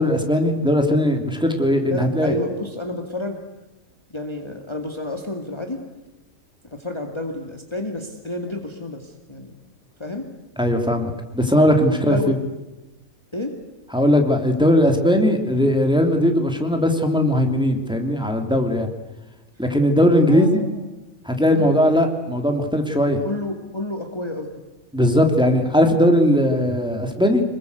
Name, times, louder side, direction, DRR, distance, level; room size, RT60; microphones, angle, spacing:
voice 1, 0.0-2.4 10.6-12.4 13.9-18.9 19.6-20.7 21.2-23.2 24.9-27.4, equal, 5° right, 4 dB, 3.1 m, -19 dB
voice 2, 1.9-3.4 4.1-5.8 6.7-9.6 10.0-10.3 11.9-12.3 13.3-13.6 20.2-20.7 21.5-21.7 23.2-24.5, left 2 dB, 20° left, 3 dB, 2.3 m, -30 dB
26.5 x 22.0 x 8.2 m, 1.0 s
omnidirectional pair, 1.5 m